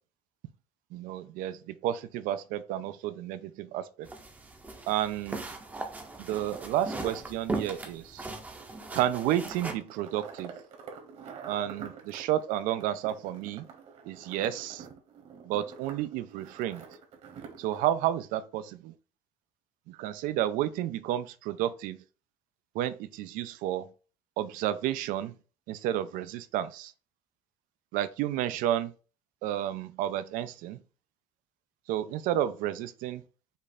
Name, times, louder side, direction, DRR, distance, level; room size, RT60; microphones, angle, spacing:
voice 1, 0.9-4.1 4.9-5.4 6.2-8.3 8.9-10.5 11.5-13.7 14.1-14.8 15.5-16.8 17.6-18.9 19.9-22.0 22.7-23.9 24.4-25.3 25.7-26.9 27.9-28.9 29.4-30.8 31.9-33.2, right 12 dB, 80° right, 0.5 m, -31 dB
sound 1, 4.1-9.7, right 2 dB, 10° right, 0.6 m, -39 dB
sound 2, 8.5-17.9, right 6 dB, 50° right, 1.2 m, -47 dB
5.2 x 2.4 x 4.2 m
cardioid pair, 160°, 14 cm